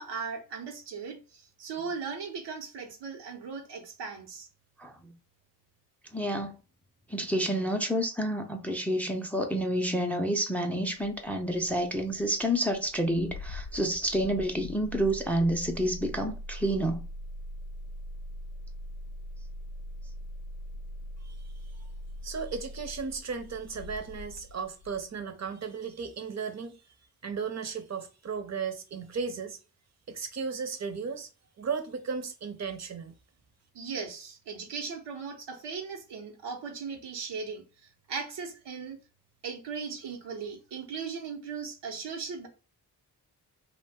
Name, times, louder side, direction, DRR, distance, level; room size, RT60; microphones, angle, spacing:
voice 1, 0.0-4.5 33.7-39.0 39.4-42.5, right 5 dB, 80° right, 0.8 m, -38 dB
voice 2, 4.8-5.1 6.1-6.5 7.1-17.0, equal, 5° left, 0.5 m, -29 dB
Engine starting, 11.0-25.1, left 1 dB, 80° left, 0.6 m, -42 dB
voice 3, 22.2-26.8 27.2-29.6 30.1-31.3 31.6-33.2, right 5 dB, 40° right, 0.7 m, -35 dB
2.5 x 2.2 x 3.5 m
cardioid pair, 50°, 41 cm